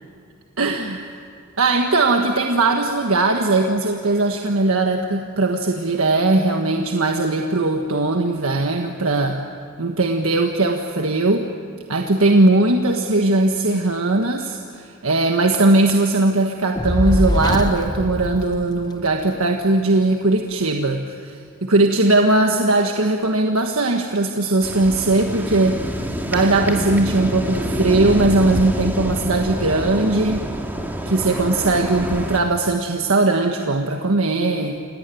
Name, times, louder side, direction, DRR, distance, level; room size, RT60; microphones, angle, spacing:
voice 1, 0.6-1.2 1.6-9.4 9.8-11.5 11.9-21.3 21.6-25.8 26.3-30.5 31.0-34.8, right 2 dB, 75° right, 3 dB, 1.5 m, -19 dB
Fire, 16.8-19.2, left 1 dB, 20° left, 0.8 m, -23 dB
sound 1, 24.6-32.4, equal, 10° right, 2.1 m, -27 dB
28.0 x 18.0 x 9.2 m, 2.4 s
head